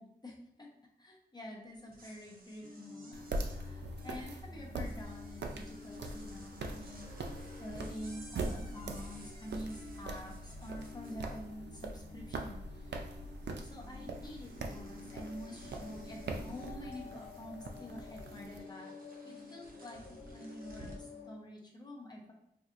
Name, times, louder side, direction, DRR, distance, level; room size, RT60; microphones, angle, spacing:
voice 1, 0.0-7.1 7.6-13.1 13.6-18.9 19.2-22.3, equal, 25° left, -2 dB, 0.9 m, -48 dB
sound 1, 1.7-11.8 12.1-12.8 13.0-21.1, right 1 dB, 55° right, 0.8 m, -56 dB
sound 2, 2.6-21.4, left 4 dB, 90° left, 0.6 m, -51 dB
sound 3, 3.1-18.6, right 2 dB, 80° right, 0.4 m, -43 dB
4.5 x 2.5 x 2.5 m, 0.83 s
wide cardioid pair, 95°, 17 cm